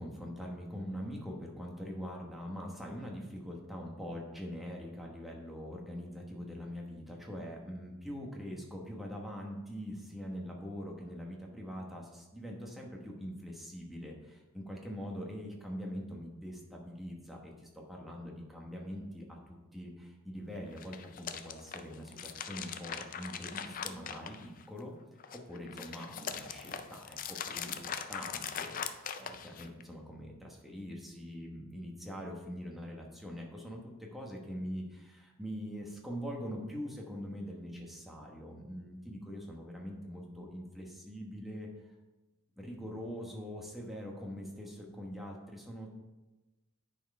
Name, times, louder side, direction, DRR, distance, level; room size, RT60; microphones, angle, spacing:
voice 1, 0.0-24.9 25.3-27.8 28.1-41.7 42.6-45.9, equal, ahead, -2 dB, 1.2 m, -43 dB
sound 1, 20.7-24.8 25.2-29.8, left 7 dB, 40° left, 0.4 m, -41 dB
10.0 x 4.5 x 4.8 m, 1.1 s
head